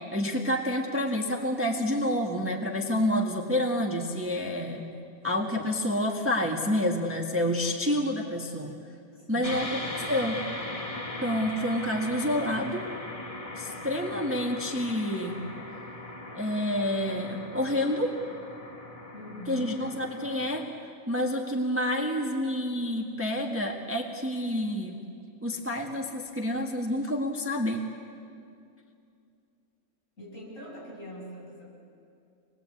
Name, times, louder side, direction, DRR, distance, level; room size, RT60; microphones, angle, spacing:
voice 1, 0.1-4.9 5.2-8.8 9.3-9.7 10.1-10.4 11.2-12.9 13.5-15.4 16.4-18.1 19.5-20.7 21.1-25.0 25.4-27.8, left 1 dB, 10° right, 1 dB, 1.4 m, -28 dB
voice 2, 9.1-9.7 19.1-19.8 30.2-31.7, equal, 55° left, -5 dB, 8.1 m, -42 dB
sound 1, 9.4-20.7, left 2 dB, 25° left, 1.5 m, -39 dB
26.0 x 21.0 x 8.4 m, 2.5 s
omnidirectional pair, 1.6 m